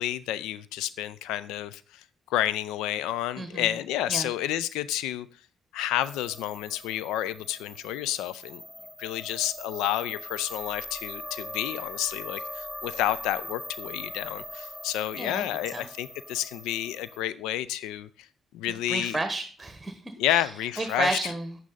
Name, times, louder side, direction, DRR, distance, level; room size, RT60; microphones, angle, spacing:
voice 1, 0.0-2.0 2.3-5.3 5.7-8.6 9.0-18.1 18.5-19.2 20.2-21.2, left 12 dB, 75° left, 17 dB, 0.4 m, -30 dB
sound 1, 6.0-17.2, left 1 dB, 25° left, 2.6 m, -41 dB
voice 2, 18.7-20.0 20.3-20.5 20.8-21.6, right 2 dB, 20° right, 8 dB, 1.2 m, -31 dB
9.3 x 8.2 x 3.9 m, 0.40 s
hypercardioid pair, 45°, 0 cm